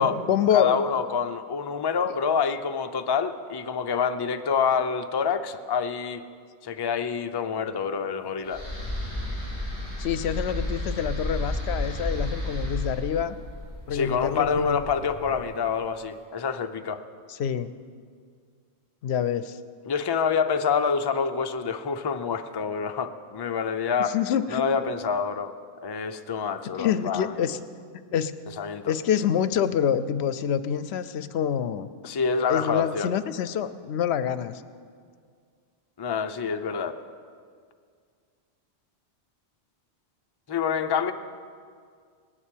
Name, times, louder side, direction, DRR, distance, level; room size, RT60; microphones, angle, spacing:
voice 1, 0.0-0.8 10.0-13.4 13.9-14.8 15.3-15.4 17.3-17.7 19.0-19.6 24.1-24.6 26.8-27.6 28.1-28.3 28.9-31.9 32.5-34.6, left 8 dB, 75° left, 13 dB, 0.8 m, -26 dB
voice 2, 0.5-6.2 6.6-8.6 13.9-17.0 19.9-24.1 24.5-25.5 25.8-27.5 28.6-28.9 32.0-33.1 36.0-37.0 40.5-41.1, left 6 dB, 30° left, 7 dB, 0.5 m, -27 dB
sound 1, 8.5-15.6, left 1 dB, 85° right, 5.7 m, -32 dB
18.5 x 7.3 x 8.4 m, 2.1 s
omnidirectional pair, 1.1 m